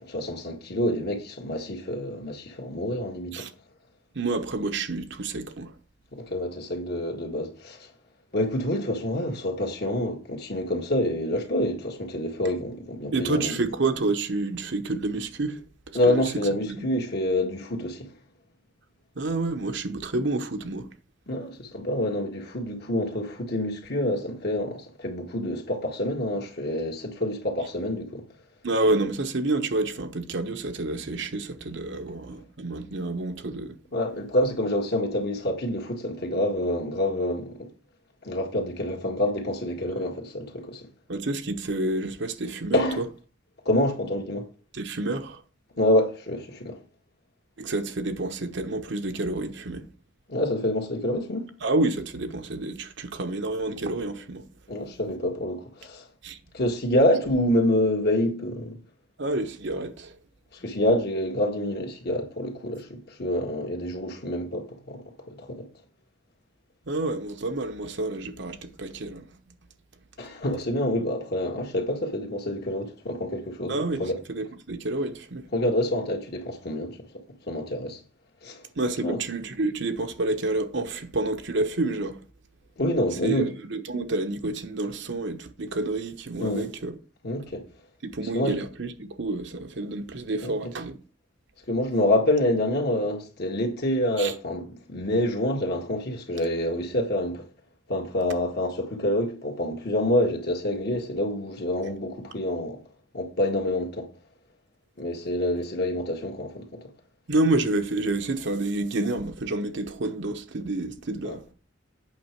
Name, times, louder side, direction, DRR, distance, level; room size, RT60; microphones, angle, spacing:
voice 1, 0.0-3.5 6.1-7.9 8.3-13.6 15.9-18.1 21.3-28.2 33.9-37.7 38.2-40.9 42.7-43.0 43.7-44.4 45.8-46.8 50.3-51.5 54.7-56.1 56.5-58.8 60.5-65.7 70.2-74.2 75.5-77.0 77.5-78.0 78.4-78.6 79.0-79.2 82.8-83.5 86.4-86.7 87.2-87.6 88.3-88.6 90.4-90.7 91.7-97.5 97.9-102.8 103.1-104.1 105.0-106.9 111.2-111.4, left 1 dB, 55° left, 1.9 m, -27 dB
voice 2, 4.1-5.7 13.1-15.6 15.9-16.2 16.6-16.9 19.2-20.9 28.6-33.8 41.1-43.1 44.7-45.4 47.6-49.9 51.6-54.4 54.9-55.0 56.2-56.4 59.2-60.2 66.9-69.3 73.7-75.4 78.8-82.2 83.2-86.9 88.1-91.0 94.2-94.3 107.3-111.4, right 2 dB, 65° right, 1.0 m, -29 dB
8.5 x 6.1 x 4.6 m
head